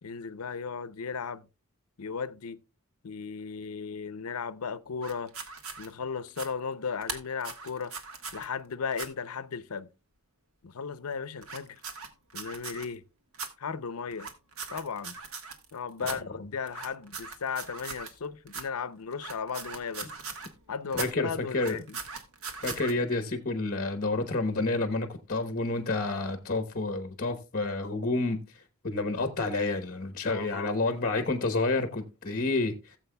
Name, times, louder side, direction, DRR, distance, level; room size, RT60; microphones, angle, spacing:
voice 1, 0.0-1.5 2.0-2.6 3.0-5.3 5.8-7.9 8.3-9.9 10.6-11.8 12.3-13.0 13.6-14.3 14.7-15.1 15.7-20.1 20.7-22.0 30.2-30.8, left 5 dB, 80° left, 0.6 m, -36 dB
sound 1, 5.0-5.9 6.3-6.5 7.0-8.5 8.9-9.1 11.4-12.8 13.3-13.5 14.1-15.7 16.0-16.2 16.7-18.2 18.5-18.6 19.1-20.5 20.9-21.1 21.5-22.9, right 5 dB, 70° right, 1.5 m, -39 dB
voice 2, 20.9-21.8 22.6-28.4 28.8-32.7, left 3 dB, 40° left, 1.0 m, -29 dB
17.0 x 7.5 x 2.2 m
head